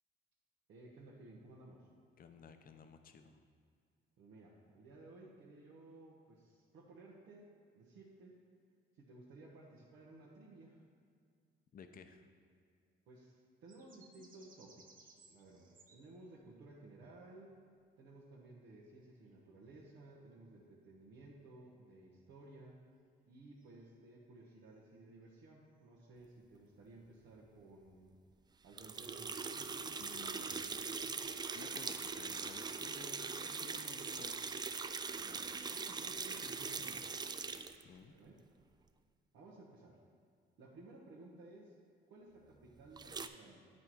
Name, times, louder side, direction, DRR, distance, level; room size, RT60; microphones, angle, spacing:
voice 1, 0.7-1.9 4.2-7.5 7.7-8.4 9.0-10.8 13.1-17.5 18.0-22.8 23.3-28.1 28.6-31.2 35.2-37.2 38.1-38.4 39.3-40.0 40.6-41.7 42.1-43.7, right 2 dB, 80° right, -7 dB, 1.1 m, -57 dB
voice 2, 2.2-3.4 11.7-12.3 30.0-30.7 31.5-34.7 37.5-38.1, left 5 dB, 45° left, 7 dB, 0.6 m, -55 dB
sound 1, 13.7-16.6 18.4-18.9 19.3-19.4 23.6-23.9 24.3-24.5 24.8-24.9, right 4 dB, 45° right, 0.9 m, -64 dB
sound 2, 28.8-37.8 43.0-43.3, right 5 dB, 20° right, 0.3 m, -41 dB
9.5 x 4.3 x 4.7 m, 2.2 s
cardioid pair, 90°, 20 cm